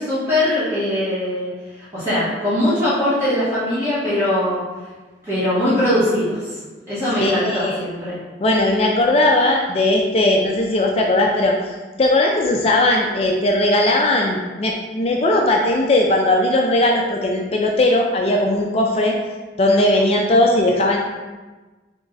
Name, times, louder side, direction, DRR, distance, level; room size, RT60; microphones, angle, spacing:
voice 1, 0.0-1.5 1.7-4.6 5.2-6.5 6.9-8.2, left 1 dB, 15° right, -14 dB, 1.5 m, -21 dB
voice 2, 7.2-7.8 8.4-11.7 12.0-19.2 19.6-21.0, left 1 dB, 30° left, 0 dB, 0.3 m, -18 dB
3.6 x 3.1 x 3.8 m, 1.3 s
head